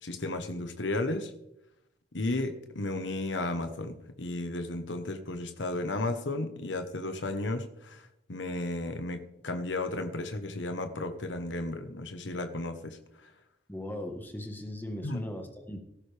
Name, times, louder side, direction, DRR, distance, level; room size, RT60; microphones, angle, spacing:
voice 1, 0.0-1.3 2.1-8.0 8.3-13.0 15.0-15.2, left 2 dB, 85° left, 8 dB, 1.2 m, -33 dB
voice 2, 13.7-15.8, left 1 dB, 10° left, 4 dB, 1.5 m, -38 dB
16.5 x 14.0 x 3.4 m, 0.81 s
head